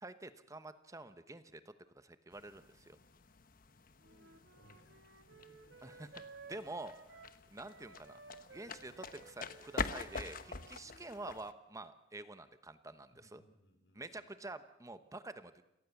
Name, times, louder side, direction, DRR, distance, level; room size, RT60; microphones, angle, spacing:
voice 1, 0.0-3.0 5.8-6.1 6.5-7.2 7.5-8.2 8.5-13.4 13.9-15.5, right 2 dB, 20° right, 11 dB, 1.0 m, -48 dB
sound 1, 2.3-11.5, left 4 dB, 50° left, 1.1 m, -46 dB
voice 2, 3.9-6.1 7.4-7.5 13.1-14.3, equal, 80° left, 6 dB, 4.4 m, -68 dB
Wind instrument woodwind instrument, 4.0-11.3, right 4 dB, 85° right, 1.7 m, -57 dB
29.0 x 18.0 x 7.1 m, 0.83 s
head